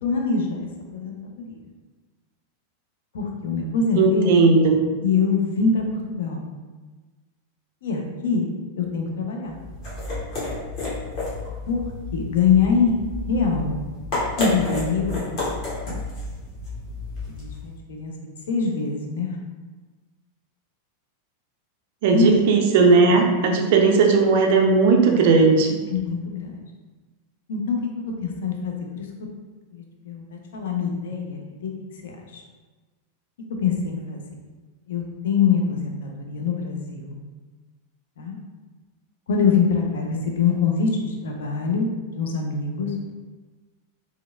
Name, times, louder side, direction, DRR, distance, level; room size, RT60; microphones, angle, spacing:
voice 1, 0.0-1.6 3.1-4.3 5.0-6.5 7.8-8.5 8.8-9.6 11.7-11.8 12.1-13.0 13.3-13.8 14.4-15.3 17.3-19.4 22.1-22.3 25.9-26.7 27.5-27.8 28.2-29.1 29.7-31.7 32.0-32.4 33.6-34.2 34.9-37.2 38.2-38.4 39.3-41.9 42.2-42.9, left 5 dB, 60° left, 1 dB, 0.4 m, -24 dB
voice 2, 4.0-4.8 22.0-25.7, right 4 dB, 50° right, 2 dB, 0.4 m, -17 dB
sound 1, 9.5-17.7, left 2 dB, 40° left, 1.1 m, -31 dB
2.7 x 2.2 x 2.3 m, 1.3 s
figure-of-eight pair, 90°, 0 cm